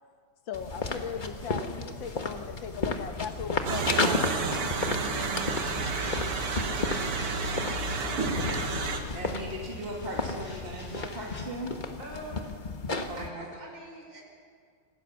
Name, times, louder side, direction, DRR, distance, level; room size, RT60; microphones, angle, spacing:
voice 1, 0.5-4.5 8.9-9.0, left 7 dB, 65° left, 8 dB, 1.7 m, -38 dB
sound 1, 0.5-13.3, left 3 dB, 30° left, 1.1 m, -34 dB
sound 2, 3.7-9.0, right 4 dB, 85° right, 2.6 m, -30 dB
sound 3, 5.6-11.4, left 3 dB, 50° left, 2.8 m, -48 dB
voice 2, 9.1-11.7 13.1-13.5, equal, 25° right, -2 dB, 2.8 m, -38 dB
voice 3, 12.0-12.4 13.2-14.2, right 1 dB, 60° right, -1 dB, 6.1 m, -43 dB
26.5 x 16.5 x 7.0 m, 2.1 s
omnidirectional pair, 2.4 m